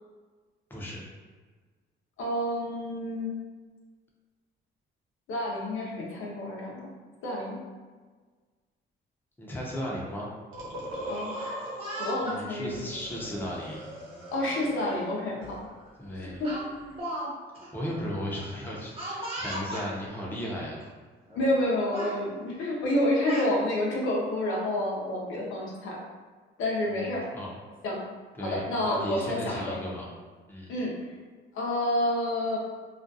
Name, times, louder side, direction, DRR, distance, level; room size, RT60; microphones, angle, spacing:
voice 1, 0.7-1.0 9.4-10.3 12.2-13.9 16.0-16.4 17.7-20.8 26.9-27.6 28.4-30.1 30.5-30.7, equal, 10° left, -4 dB, 0.6 m, -36 dB
voice 2, 2.2-3.3 5.3-6.9 7.2-7.6 11.1-11.3 12.0-12.8 14.3-15.6 16.4-16.5 21.4-26.0 26.6-27.3 27.8-28.0 28.4-29.8 30.7-30.9 31.5-32.6, left 1 dB, 80° left, -3 dB, 0.6 m, -29 dB
sound 1, 10.5-12.3 12.7-15.1 15.4-17.0, equal, 85° right, 0.8 m, -40 dB
Speech, 11.3-12.4 13.3-13.5 14.8-14.9 15.3-15.5 16.4-17.3 17.5-17.7 19.0-19.9 20.8-20.9 21.3-21.6 21.9-22.2 22.9-23.5, right 1 dB, 30° right, 0.8 m, -37 dB
2.4 x 2.2 x 2.6 m, 1.4 s
cardioid pair, 90°, 20 cm